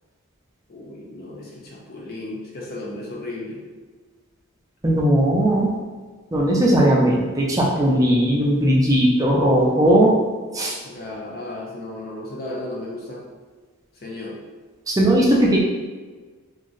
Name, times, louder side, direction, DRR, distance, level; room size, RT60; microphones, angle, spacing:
voice 1, 0.7-3.6 10.8-13.3 13.9-14.4, left 1 dB, 45° left, -4 dB, 0.5 m, -34 dB
voice 2, 4.8-5.7 6.3-10.1 10.5-10.8 14.9-15.6, right 1 dB, 15° right, -3 dB, 0.4 m, -18 dB
2.5 x 2.0 x 3.7 m, 1.4 s
head